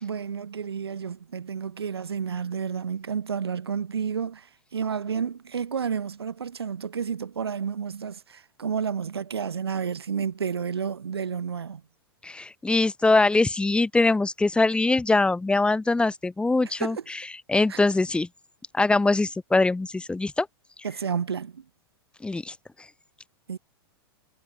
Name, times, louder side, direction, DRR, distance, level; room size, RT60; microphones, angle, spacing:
voice 1, 0.0-11.8 16.6-17.0 17.7-17.8 20.8-21.6 23.5-23.6, right 7 dB, 80° right, 1.1 m, -31 dB
voice 2, 12.2-17.0 17.5-18.3 18.7-20.5 22.2-22.5, left 3 dB, 10° left, 1.7 m, -22 dB
figure-of-eight pair, 100°, 13 cm